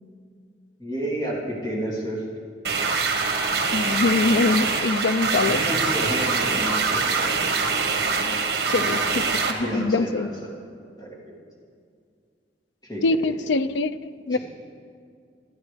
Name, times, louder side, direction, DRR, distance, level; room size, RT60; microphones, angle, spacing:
voice 1, 0.8-2.3 5.4-7.5 9.6-10.5 11.0-11.2 12.8-13.0 13.3-13.4 14.3-14.4, right 1 dB, 20° left, -5 dB, 2.8 m, -31 dB
sound 1, 2.6-9.5, right 4 dB, 60° right, 1.4 m, -24 dB
voice 2, 3.7-5.6 8.3-8.4 8.7-10.3 13.0-14.4, left 3 dB, 85° left, 14 dB, 0.5 m, -24 dB
27.0 x 10.0 x 3.5 m, 2.2 s
head